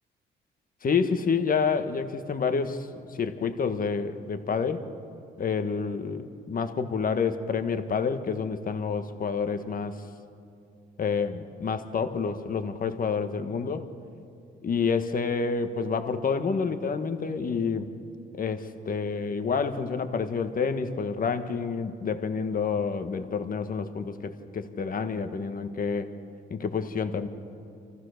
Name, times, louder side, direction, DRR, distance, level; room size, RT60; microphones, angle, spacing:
voice 1, 0.8-4.9 5.4-10.0 11.0-13.9 14.6-17.9 18.3-26.1 26.5-27.3, left 5 dB, 45° left, 8 dB, 1.5 m, -28 dB
27.0 x 15.0 x 6.6 m, 2.5 s
cardioid pair, 90°, 20 cm